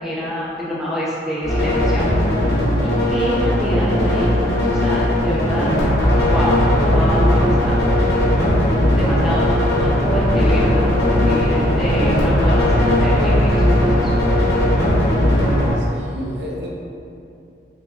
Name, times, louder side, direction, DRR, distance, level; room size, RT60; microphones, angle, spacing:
voice 1, 0.0-2.0 2.8-5.7 6.3-6.6 6.9-7.8 8.8-14.2, equal, ahead, -8 dB, 0.4 m, -26 dB
sound 1, 1.4-15.7, left 1 dB, 60° left, 1.0 m, -17 dB
voice 2, 15.8-16.7, left 1 dB, 80° right, -4 dB, 0.6 m, -31 dB
3.5 x 3.0 x 2.3 m, 2.6 s
head